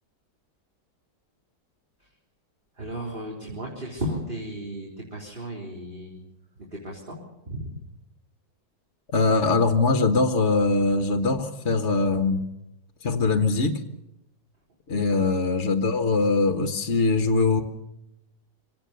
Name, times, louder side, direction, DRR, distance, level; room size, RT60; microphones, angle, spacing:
voice 1, 2.8-6.2 6.8-7.2 7.5-7.8 15.1-15.3, equal, 30° right, -2 dB, 4.0 m, -34 dB
voice 2, 9.1-12.5 13.0-13.8 14.9-17.6, left 3 dB, 40° left, 6 dB, 1.5 m, -22 dB
25.0 x 18.0 x 6.9 m, 0.87 s
omnidirectional pair, 1.9 m